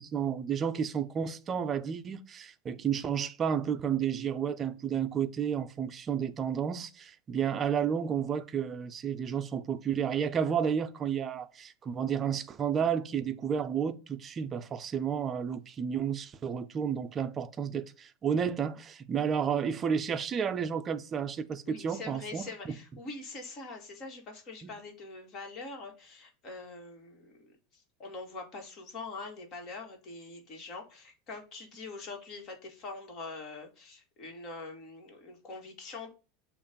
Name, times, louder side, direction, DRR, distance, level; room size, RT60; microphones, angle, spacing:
voice 1, 0.0-22.8 24.6-24.7, right 7 dB, 25° right, 0.5 m, -31 dB
voice 2, 21.7-36.1, left 3 dB, 40° left, 2.0 m, -44 dB
6.9 x 2.6 x 5.2 m
supercardioid pair, 140°, 0 cm